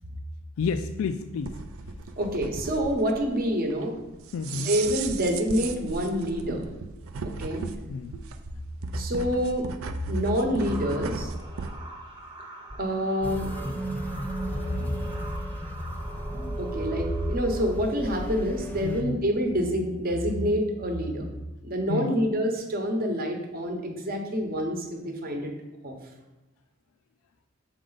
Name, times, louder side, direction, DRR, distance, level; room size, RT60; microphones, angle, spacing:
voice 1, 0.6-1.6 4.3-4.7 7.9-8.1 18.8-19.2 21.9-22.2, left 5 dB, 75° left, 9 dB, 0.3 m, -30 dB
sound 1, 1.4-11.8, right 4 dB, 75° right, 0.4 m, -37 dB
voice 2, 2.2-4.0 4.5-6.6 7.2-7.6 8.9-9.7 10.1-11.3 12.8-13.5 16.6-21.3 21.6-25.5 25.8-26.0, equal, 45° right, 3 dB, 0.9 m, -27 dB
sound 2, 10.6-18.6, right 1 dB, 20° right, 0.8 m, -43 dB
sound 3, 13.2-19.0, right 1 dB, 10° left, 0.5 m, -33 dB
6.3 x 4.3 x 3.9 m, 1.1 s
head